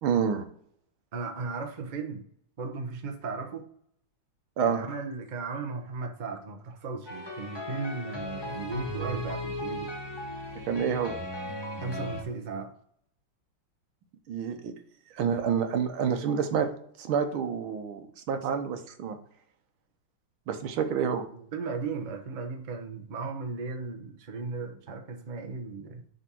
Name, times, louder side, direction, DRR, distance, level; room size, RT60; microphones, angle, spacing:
voice 1, 0.0-0.5 4.6-4.8 10.7-11.2 14.3-14.7 15.1-16.7 17.0-19.2 20.5-21.3, right 7 dB, 80° right, 1.8 m, -28 dB
voice 2, 1.1-2.2 2.6-3.6 4.6-9.9 11.8-12.7 21.3-26.1, right 4 dB, 35° right, 0.8 m, -36 dB
sound 1, 7.1-12.2, left 1 dB, 25° left, 0.6 m, -37 dB
6.9 x 4.0 x 6.1 m
omnidirectional pair, 2.3 m